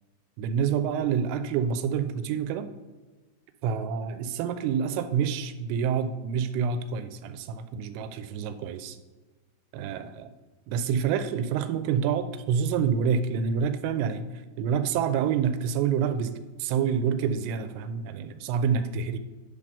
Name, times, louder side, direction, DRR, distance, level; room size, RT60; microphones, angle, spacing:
voice 1, 0.4-2.7 3.6-9.0 9.7-10.3 10.7-19.2, right 7 dB, 85° right, 10 dB, 3.1 m, -27 dB
10.0 x 3.6 x 5.2 m, 1.3 s
omnidirectional pair, 5.6 m